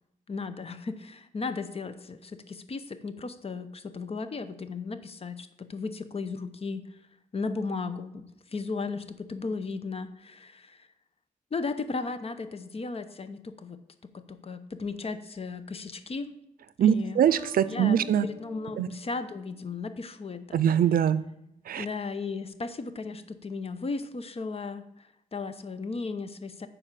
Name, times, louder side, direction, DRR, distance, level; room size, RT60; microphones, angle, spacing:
voice 1, 0.3-7.0 7.3-10.9 11.5-16.3 16.8-17.2 17.6-20.6 21.8-26.7, left 4 dB, 45° left, 11 dB, 0.8 m, -35 dB
voice 2, 16.8-18.3 18.7-18.9 20.5-21.3 21.7-21.9, right 9 dB, 90° right, 17 dB, 0.5 m, -23 dB
sound 1, 17.3-19.9, left 11 dB, 85° left, 1.5 m, -46 dB
9.9 x 4.7 x 7.5 m, 0.82 s
wide cardioid pair, 105°, 15 cm